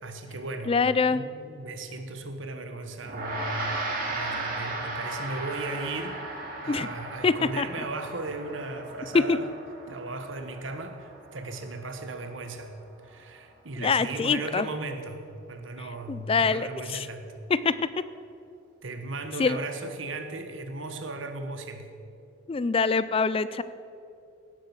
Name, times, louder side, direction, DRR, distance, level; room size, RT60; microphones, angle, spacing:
voice 1, 0.0-0.8 1.1-3.8 4.1-6.2 6.6-9.5 9.9-12.7 13.0-17.3 18.8-21.9, right 2 dB, 70° right, 7 dB, 1.4 m, -36 dB
voice 2, 0.7-1.2 6.7-6.9 7.2-7.7 9.1-9.4 13.8-14.7 16.1-17.1 17.5-17.8 19.4-19.6 22.5-23.6, left 4 dB, 30° left, 16 dB, 0.4 m, -24 dB
Gong, 3.0-12.7, right 2 dB, 50° right, 2.9 m, -36 dB
17.0 x 7.7 x 7.3 m, 2.6 s
head